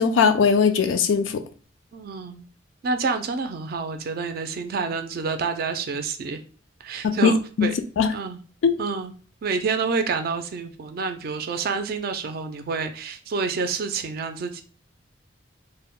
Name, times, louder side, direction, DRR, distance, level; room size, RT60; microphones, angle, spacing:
voice 1, 0.0-1.4 7.0-7.7 8.0-8.1 8.6-8.8, left 5 dB, 85° left, 0.4 m, -20 dB
voice 2, 1.9-2.4 2.8-6.4 6.8-7.3 7.6-7.7 8.1-8.4 8.8-9.1 9.4-14.6, right 4 dB, 50° right, 0.4 m, -28 dB
2.1 x 2.0 x 3.6 m
head